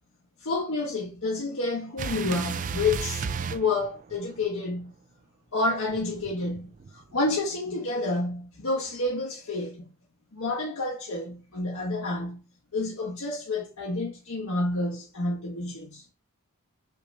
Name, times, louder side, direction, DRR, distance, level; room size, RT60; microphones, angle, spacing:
voice 1, 0.4-4.9 5.5-9.8 10.3-12.4 12.7-16.0, left 2 dB, 65° left, 1.0 m, -29 dB
sound 1, 2.0-4.5 5.9-7.2, right 6 dB, 35° right, 0.3 m, -34 dB
5.6 x 2.6 x 3.3 m
head